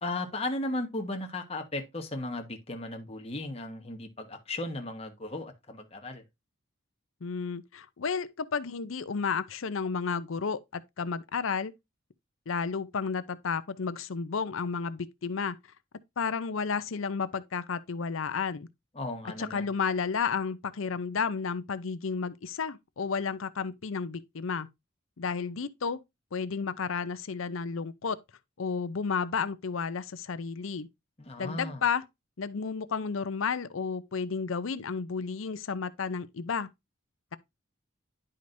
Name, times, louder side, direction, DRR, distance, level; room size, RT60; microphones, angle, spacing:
voice 1, 0.0-6.2 18.9-19.7 31.2-31.8, left 2 dB, 30° left, 1.3 m, -36 dB
voice 2, 7.2-11.7 12.5-15.6 16.2-18.7 19.4-24.7 25.2-26.0 26.3-28.2 28.6-30.9 31.4-32.0 32.4-36.7, left 5 dB, 75° left, 0.6 m, -32 dB
10.5 x 5.0 x 2.6 m
head